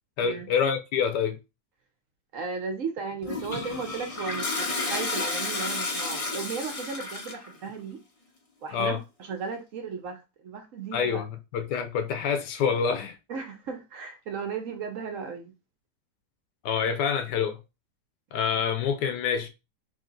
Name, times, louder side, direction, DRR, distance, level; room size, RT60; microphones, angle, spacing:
voice 1, 0.2-1.4 8.7-9.0 10.9-13.2 16.6-17.6 18.3-19.5, left 6 dB, 80° left, 1.2 m, -27 dB
voice 2, 2.3-8.0 8.6-11.2 13.3-15.5, right 5 dB, 60° right, 0.9 m, -35 dB
Toilet flush, 3.2-7.5, left 3 dB, 40° left, 0.5 m, -31 dB
3.6 x 2.8 x 3.7 m
omnidirectional pair, 1.9 m